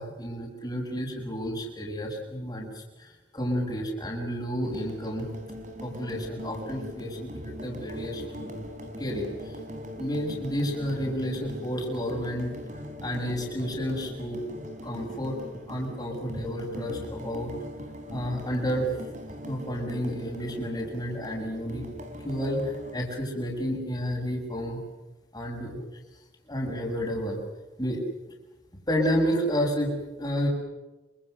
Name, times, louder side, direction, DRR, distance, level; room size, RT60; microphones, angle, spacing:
voice 1, 0.0-5.3 5.8-8.5 9.0-9.6 10.0-12.6 13.0-14.4 14.8-15.4 15.7-17.5 18.1-18.9 19.4-21.9 22.2-24.8 25.3-25.8 26.5-27.4 27.8-28.0 28.9-30.5, equal, 20° left, -2 dB, 7.0 m, -31 dB
sound 1, 4.6-23.0, equal, 40° right, 4.8 m, -40 dB
27.5 x 26.0 x 6.7 m, 1.1 s
head